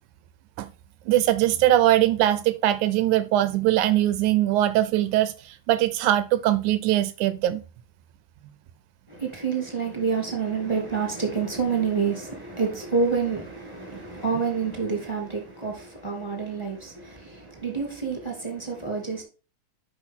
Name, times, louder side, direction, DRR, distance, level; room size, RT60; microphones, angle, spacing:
voice 1, 1.1-7.6, right 13 dB, 80° right, 1.8 m, -21 dB
voice 2, 9.1-19.2, right 5 dB, 10° left, 1.7 m, -28 dB
8.8 x 5.6 x 3.6 m
omnidirectional pair, 3.8 m